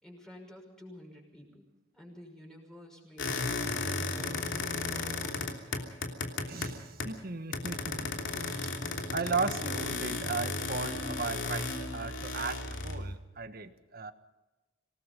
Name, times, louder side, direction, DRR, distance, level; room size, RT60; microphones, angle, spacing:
voice 1, 0.0-1.6 1.9-5.9, equal, 5° left, 1 dB, 6.0 m, -51 dB
sound 1, 3.2-7.2 7.5-13.2, left 3 dB, 75° left, 3.0 m, -35 dB
voice 2, 6.4-14.1, right 4 dB, 50° right, 10 dB, 1.5 m, -36 dB
26.5 x 18.5 x 5.4 m, 1.1 s
head